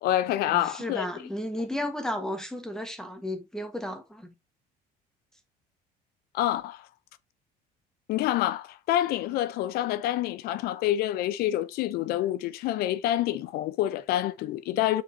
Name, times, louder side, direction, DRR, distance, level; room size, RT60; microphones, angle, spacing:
voice 1, 0.0-1.1 6.3-6.9 8.1-15.0, left 13 dB, 70° left, 0.7 m, -27 dB
voice 2, 0.5-4.3, left 1 dB, 5° left, 1.5 m, -33 dB
7.2 x 5.3 x 2.8 m
cardioid pair, 150°, 17 cm